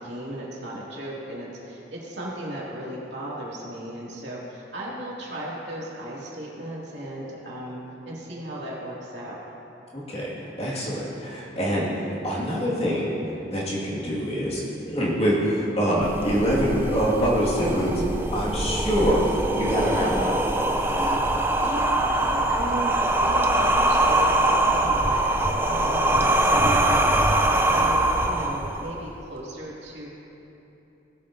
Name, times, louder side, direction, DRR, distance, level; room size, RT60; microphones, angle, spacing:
voice 1, 0.0-7.8 8.0-9.4 21.6-27.1 27.7-30.1, right 1 dB, 75° right, -5 dB, 2.4 m, -35 dB
voice 2, 9.9-20.4 25.6-26.8, equal, 35° left, -6 dB, 2.0 m, -25 dB
sound 1, 16.0-29.0, right 1 dB, 10° right, 0.4 m, -23 dB
17.0 x 7.4 x 2.7 m, 2.9 s
head